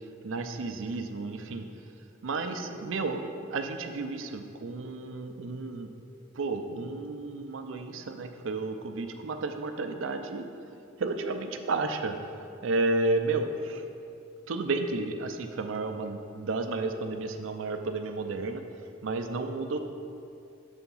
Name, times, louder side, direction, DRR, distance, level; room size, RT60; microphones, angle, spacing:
voice 1, 0.2-1.7 2.2-5.9 6.3-10.5 11.0-12.1 12.6-13.8 14.5-18.6 19.0-19.8, right 3 dB, 90° right, 6 dB, 0.5 m, -32 dB
6.7 x 3.5 x 5.5 m, 2.6 s
head